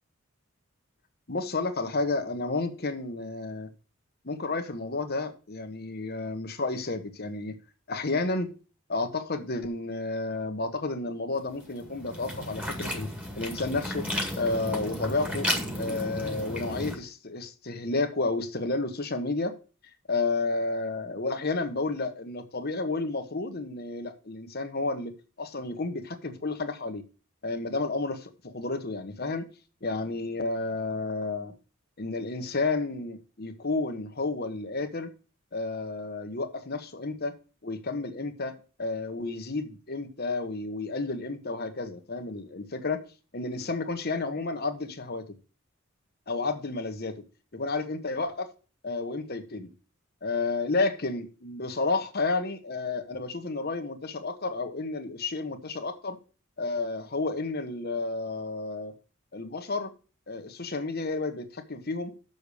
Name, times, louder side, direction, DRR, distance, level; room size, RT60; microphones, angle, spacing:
voice 1, 1.3-3.7 4.2-7.5 7.9-8.5 8.9-13.1 13.4-14.0 14.4-15.5 15.8-19.6 20.1-25.1 25.4-27.0 27.4-29.5 29.8-31.5 32.0-35.1 35.5-37.3 37.6-43.0 43.3-45.2 46.3-47.2 47.5-48.5 48.8-49.7 50.2-56.2 56.6-58.9 59.3-59.9 60.3-62.1, left 3 dB, 45° left, 1.3 m, -31 dB
sound 1, 11.5-16.9, equal, 5° right, 2.0 m, -33 dB
6.8 x 6.7 x 6.8 m
head